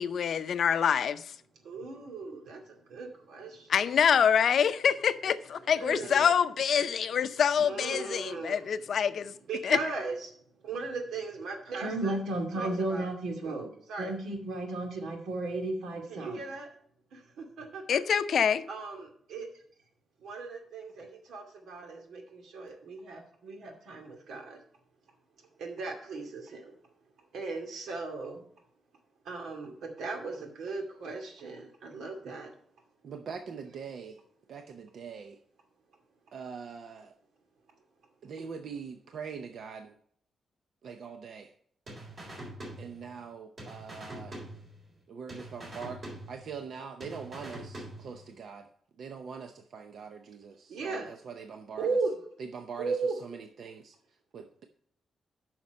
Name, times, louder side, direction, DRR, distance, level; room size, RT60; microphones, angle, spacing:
voice 1, 0.0-1.3 3.7-9.3 9.6-9.8 17.9-18.6, left 7 dB, 55° left, 0.5 m, -26 dB
voice 2, 1.6-3.7 5.7-6.3 7.6-8.7 9.5-10.3 10.6-16.7 17.1-18.0 18.7-19.5 20.2-24.6 25.6-26.7 27.3-28.4 29.3-32.5 50.7-51.1 51.8-52.2 52.8-53.2, right 3 dB, 85° right, 2.3 m, -36 dB
voice 3, 33.0-34.2 34.5-35.4 36.3-37.1 38.2-39.9 40.8-41.5 42.8-44.4 45.1-48.7 49.0-52.0 52.4-54.6, right 6 dB, 60° right, 0.7 m, -43 dB
sound 1, 41.9-43.3 43.6-45.0 45.3-46.7 47.0-48.3, right 1 dB, 35° right, 3.7 m, -44 dB
9.5 x 5.9 x 5.2 m
wide cardioid pair, 160°, 0 cm